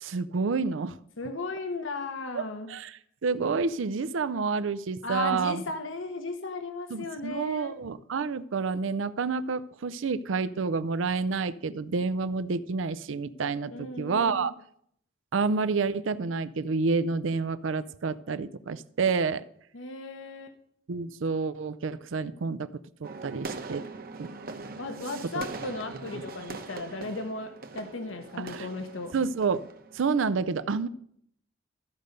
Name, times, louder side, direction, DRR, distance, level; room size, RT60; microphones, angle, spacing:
voice 1, 0.0-1.0 2.3-2.4 2.7-5.6 6.9-14.5 15.3-19.4 20.9-22.7 23.0-23.9 24.2-24.3 26.1-26.2 28.4-28.7 29.1-29.6 29.9-30.9, right 4 dB, 80° right, 15 dB, 0.5 m, -29 dB
voice 2, 1.2-2.7 5.0-7.7 13.7-14.5 19.7-20.5 24.8-29.1, left 3 dB, 85° left, 7 dB, 1.1 m, -36 dB
sound 1, 23.0-30.3, right 3 dB, 50° right, 0.9 m, -42 dB
13.5 x 5.2 x 6.7 m, 0.67 s
head